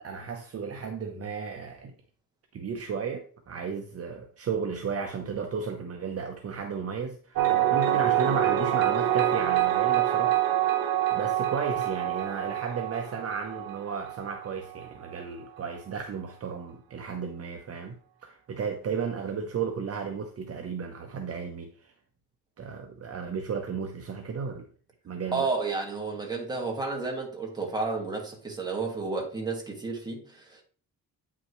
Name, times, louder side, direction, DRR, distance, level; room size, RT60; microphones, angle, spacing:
voice 1, 0.0-1.9 2.5-10.4 11.1-21.9 22.6-24.7 25.0-25.5, right 6 dB, 45° right, 0.9 m, -34 dB
sound 1, 7.4-14.9, right 12 dB, 80° right, 1.1 m, -26 dB
voice 2, 25.3-30.6, right 3 dB, 10° right, 1.9 m, -31 dB
8.7 x 5.9 x 3.1 m
wide cardioid pair, 165°, 35 cm